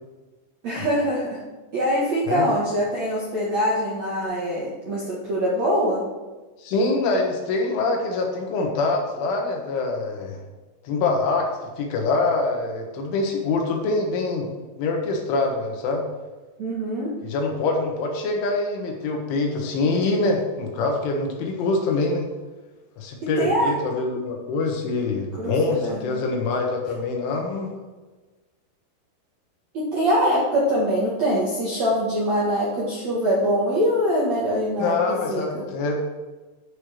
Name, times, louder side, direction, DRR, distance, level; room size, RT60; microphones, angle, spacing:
voice 1, 0.6-1.4 1.7-6.0 16.6-17.1 23.2-23.7 25.4-25.5 25.8-26.0 29.7-34.9 35.3-35.6, equal, 60° right, -5 dB, 1.8 m, -23 dB
voice 2, 6.6-10.4 10.8-11.5 11.8-14.5 14.8-16.0 17.2-22.3 23.0-27.7 34.8-36.0, left 3 dB, 75° left, 1 dB, 3.8 m, -24 dB
11.0 x 5.3 x 6.5 m, 1.2 s
omnidirectional pair, 5.8 m